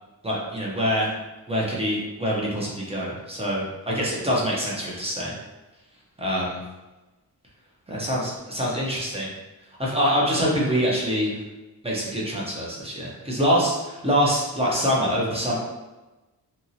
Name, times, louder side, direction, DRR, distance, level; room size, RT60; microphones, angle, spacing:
voice 1, 0.2-1.1 1.5-5.3 6.2-6.6 7.9-9.3 9.8-11.3 11.8-15.6, equal, 15° right, -4 dB, 0.6 m, -25 dB
2.9 x 2.8 x 2.6 m, 1.1 s
wide cardioid pair, 170°, 40 cm